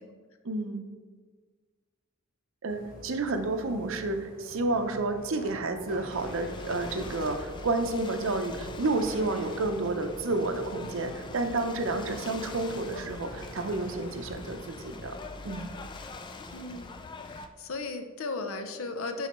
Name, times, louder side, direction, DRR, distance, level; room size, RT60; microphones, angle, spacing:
voice 1, 0.4-0.8 2.6-15.1 15.4-15.7, right 2 dB, 65° right, 7 dB, 0.6 m, -30 dB
sound 1, 2.7-14.3, equal, 40° left, 1.2 m, -46 dB
Ocean / Boat Water vehicle, 6.2-17.5, left 3 dB, 20° left, 0.3 m, -43 dB
voice 2, 16.5-16.9 17.2-19.3, left 3 dB, 65° left, 7 dB, 0.6 m, -36 dB
10.0 x 3.9 x 3.0 m, 1.5 s
head